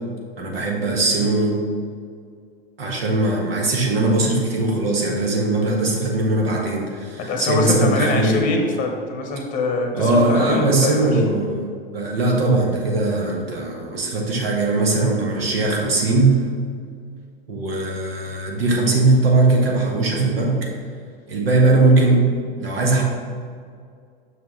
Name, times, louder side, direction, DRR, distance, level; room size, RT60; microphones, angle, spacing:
voice 1, 0.4-1.6 2.8-8.4 9.9-11.7 11.9-16.4 17.5-20.7 21.3-22.3 22.6-23.0, right 2 dB, 70° right, 0 dB, 1.5 m, -19 dB
voice 2, 7.2-11.3, left 3 dB, 25° left, 3 dB, 0.9 m, -24 dB
6.2 x 5.7 x 3.1 m, 2.2 s
hypercardioid pair, 100°, 31 cm